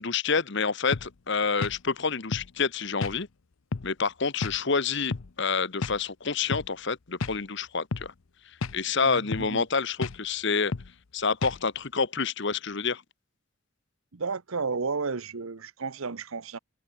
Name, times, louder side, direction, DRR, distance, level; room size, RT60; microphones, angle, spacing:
voice 1, 0.0-3.3 3.8-8.1 8.7-10.7 11.1-13.0, left 5 dB, 55° left, 1.1 m, -28 dB
sound 1, 0.9-1.1 1.6-1.8 2.3-2.5 3.0-3.2 3.7-3.9 4.4-4.6 5.1-5.3 5.8-6.0 6.5-6.7 7.2-7.4 7.9-8.1 8.6-8.8 9.3-9.5 10.0-10.2 10.7-10.9 11.4-11.6, left 4 dB, 70° left, 0.7 m, -32 dB
voice 2, 9.0-9.6 14.1-16.6, right 4 dB, 70° right, 0.9 m, -32 dB
head